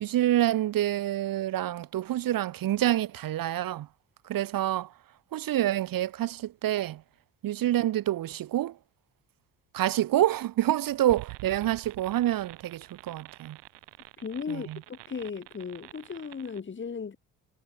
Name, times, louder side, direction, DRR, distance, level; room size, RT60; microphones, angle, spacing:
voice 1, 0.0-3.9 4.3-4.9 5.3-7.0 7.4-8.8 9.7-13.6 14.5-14.8, right 13 dB, 55° right, 0.8 m, -27 dB
sound 1, 11.1-16.6, right 25 dB, 80° right, 4.8 m, -47 dB
voice 2, 14.2-17.2, left 5 dB, 30° left, 1.1 m, -36 dB
hypercardioid pair, 50°, 42 cm